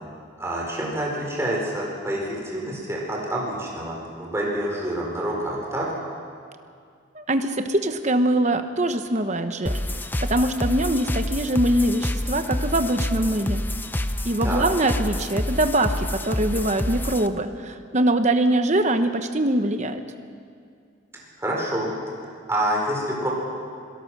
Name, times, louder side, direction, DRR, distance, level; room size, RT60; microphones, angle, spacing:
voice 1, 0.4-5.9 14.4-14.6 21.4-21.9 22.2-23.3, right 1 dB, 15° right, -3 dB, 4.5 m, -27 dB
voice 2, 7.1-9.8 10.2-13.6 14.2-20.0, right 1 dB, 35° right, 8 dB, 1.0 m, -23 dB
sound 1, 9.7-17.3, left 1 dB, 10° left, 0.5 m, -28 dB
26.0 x 18.0 x 6.1 m, 2.2 s
head